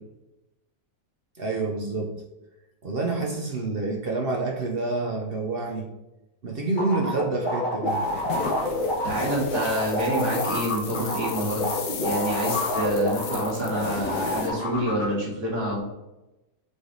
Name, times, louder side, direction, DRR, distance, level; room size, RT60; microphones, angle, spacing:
voice 1, 1.4-2.2 2.8-5.9 6.4-8.1, right 3 dB, 50° right, 1 dB, 0.7 m, -28 dB
sound 1, 6.8-13.8 14.1-15.0, left 1 dB, 30° left, 1.6 m, -28 dB
sound 2, 7.9-14.5, left 5 dB, 70° left, 1.3 m, -34 dB
voice 2, 9.0-11.7 12.0-15.8, right 1 dB, 70° right, -4 dB, 2.6 m, -27 dB
7.4 x 3.5 x 3.8 m, 0.97 s
omnidirectional pair, 1.8 m